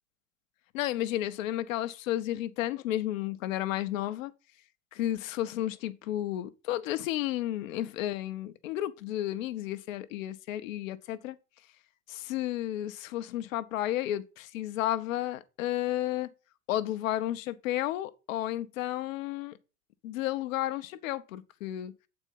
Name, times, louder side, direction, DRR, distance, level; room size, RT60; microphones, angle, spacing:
voice 1, 0.7-4.3 4.9-11.4 12.1-16.3 16.7-19.6 20.0-21.9, left 13 dB, 70° left, 1.0 m, -32 dB
8.1 x 4.5 x 5.4 m
hypercardioid pair, 95°, 42 cm